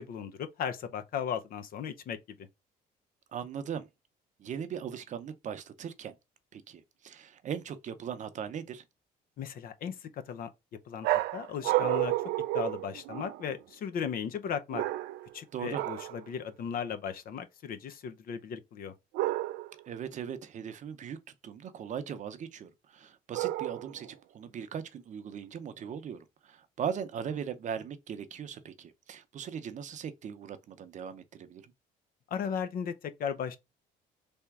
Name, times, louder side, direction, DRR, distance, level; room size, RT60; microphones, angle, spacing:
voice 1, 0.0-2.5 9.4-10.5 10.9-11.1 11.3-12.1 12.5-14.8 15.3-18.9 32.3-33.6, left 7 dB, 60° left, 0.7 m, -36 dB
voice 2, 3.3-3.9 4.4-6.1 6.5-8.8 15.5-15.8 19.9-21.2 21.4-31.7, right 8 dB, 45° right, 0.7 m, -39 dB
sound 1, 11.0-13.5 14.7-15.3 15.7-16.2 19.1-19.8 23.3-24.1, right 17 dB, 85° right, 0.4 m, -31 dB
3.5 x 2.8 x 4.6 m
cardioid pair, 110°, 17 cm